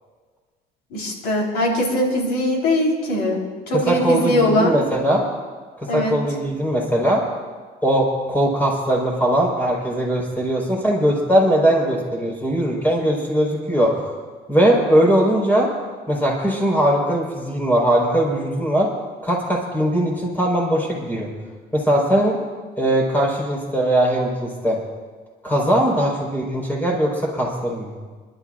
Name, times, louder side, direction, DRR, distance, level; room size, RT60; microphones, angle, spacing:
voice 1, 0.9-4.8 5.9-6.2, left 1 dB, 80° left, -2 dB, 4.3 m, -21 dB
voice 2, 3.8-5.3 5.9-7.2 7.8-14.2 14.5-15.7 16.1-18.9 19.2-21.3 21.7-22.4 22.8-24.8 25.4-27.9, right 1 dB, 10° left, -2 dB, 4.8 m, -20 dB
27.5 x 12.5 x 2.6 m, 1.5 s
cardioid pair, 110°, 17 cm